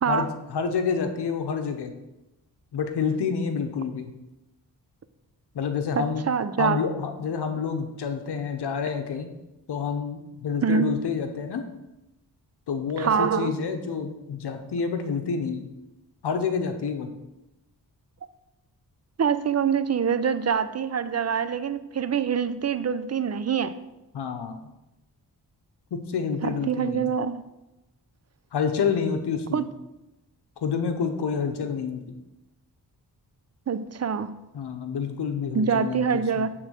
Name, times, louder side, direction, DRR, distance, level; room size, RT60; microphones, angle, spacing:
voice 1, 0.0-1.9 2.7-4.1 5.5-6.2 6.6-9.3 9.7-11.7 12.7-15.7 16.2-17.1 24.1-24.7 25.9-27.1 28.5-29.7 30.6-32.2 34.5-36.5, left 6 dB, 75° left, 1.0 m, -28 dB
voice 2, 5.9-6.8 10.6-11.0 13.0-13.5 19.2-23.8 26.4-27.4 29.5-29.6 33.7-34.3 35.5-36.5, right 6 dB, 40° right, 0.6 m, -25 dB
8.9 x 3.9 x 6.4 m
cardioid pair, 70°, 41 cm